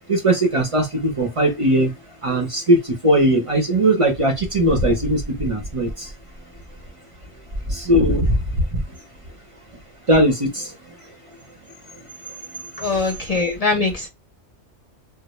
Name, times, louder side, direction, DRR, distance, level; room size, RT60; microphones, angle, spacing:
voice 1, 0.1-1.9 2.2-6.1 7.7-8.8 10.1-10.7, right 1 dB, 40° right, 0.5 m, -19 dB
voice 2, 12.8-14.1, left 3 dB, 45° left, 0.5 m, -22 dB
2.1 x 2.0 x 2.9 m
omnidirectional pair, 1.3 m